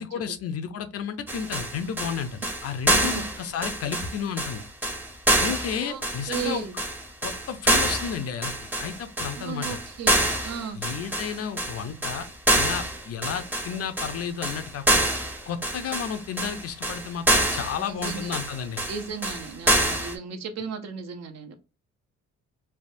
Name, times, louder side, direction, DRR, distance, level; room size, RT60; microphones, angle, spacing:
voice 1, 0.0-4.6 5.4-6.6 7.2-8.5 8.8-9.8 10.7-12.3 12.5-15.0 15.5-18.8, left 7 dB, 55° left, 0.5 m, -32 dB
sound 1, 1.3-20.1, right 1 dB, 5° right, 0.6 m, -26 dB
voice 2, 3.0-3.3 5.7-6.0 6.3-6.8 9.3-10.8 17.9-18.4 18.9-21.5, right 6 dB, 60° right, 0.7 m, -35 dB
3.4 x 2.2 x 2.5 m
cardioid pair, 90°, 30 cm